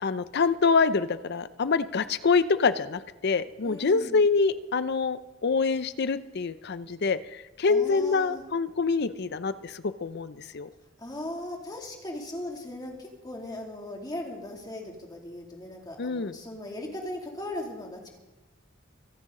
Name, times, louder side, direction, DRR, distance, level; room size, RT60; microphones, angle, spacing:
voice 1, 0.0-10.7 16.0-16.4, left 4 dB, 55° left, 14 dB, 0.6 m, -26 dB
voice 2, 3.6-4.2 7.7-8.4 11.0-18.2, left 1 dB, 20° left, 0 dB, 2.6 m, -38 dB
24.0 x 10.5 x 3.8 m, 1.2 s
head